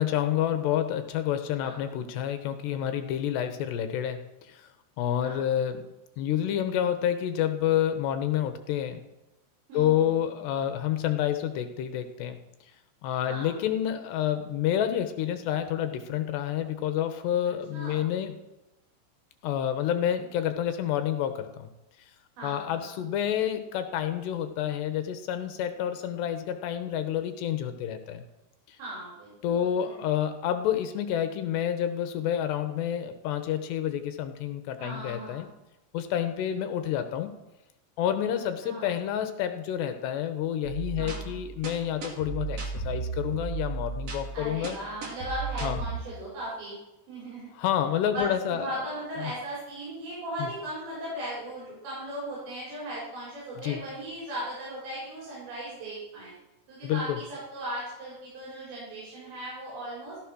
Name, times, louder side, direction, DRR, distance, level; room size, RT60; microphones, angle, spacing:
voice 1, 0.0-4.2 4.5-4.7 5.0-5.9 6.2-9.0 9.7-12.4 13.0-18.4 19.4-21.7 22.4-28.2 28.7-28.8 29.4-35.5 35.9-37.3 38.0-44.8 45.6-45.8 47.6-48.9 49.2-49.3 50.4-50.5 53.6-53.8 56.8-57.2, left 10 dB, 80° left, 8 dB, 3.2 m, -29 dB
voice 2, 1.6-2.0 5.2-5.5 9.7-10.2 13.2-13.6 17.7-18.1 22.4-22.9 28.8-30.0 34.8-35.5 38.6-38.9 41.0-41.3 44.3-46.7 47.1-47.5 48.1-56.3 56.7-60.2, right 1 dB, 80° right, -7 dB, 7.8 m, -38 dB
sound 1, 40.6-46.0, right 4 dB, 40° right, 3.3 m, -35 dB
15.0 x 14.0 x 6.2 m, 0.96 s
omnidirectional pair, 5.0 m